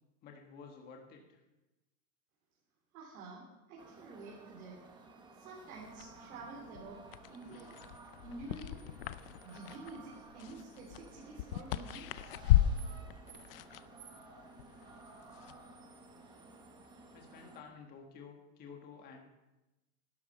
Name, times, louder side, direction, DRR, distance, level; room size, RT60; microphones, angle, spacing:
voice 1, 0.2-1.4 12.6-12.7 17.1-19.2, left 5 dB, 20° left, 2 dB, 1.4 m, -52 dB
voice 2, 2.9-4.8 5.3-7.0 7.3-7.7 8.2-8.8 9.4-12.3, right 3 dB, 70° right, -4 dB, 3.6 m, -49 dB
sound 1, 3.8-17.6, right 3 dB, 10° right, 0.9 m, -55 dB
sound 2, 5.8-15.7, left 12 dB, 45° left, 0.4 m, -36 dB
12.0 x 11.5 x 5.6 m, 1.0 s
supercardioid pair, 175°, 43 cm